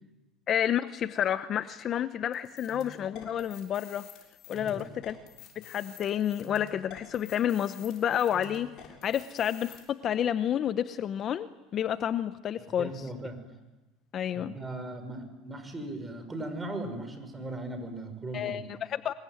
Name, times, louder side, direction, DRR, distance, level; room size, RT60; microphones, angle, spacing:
voice 1, 0.5-4.1 4.5-5.2 5.6-13.1 14.1-14.5 18.3-19.1, left 10 dB, 40° left, 13 dB, 0.8 m, -30 dB
sound 1, 2.3-9.8, left 9 dB, 55° left, 7.0 m, -49 dB
voice 2, 4.5-4.8 12.8-13.4 14.3-18.7, right 2 dB, 15° right, 7 dB, 5.7 m, -38 dB
25.5 x 22.5 x 9.4 m, 1.1 s
supercardioid pair, 120°, 0 cm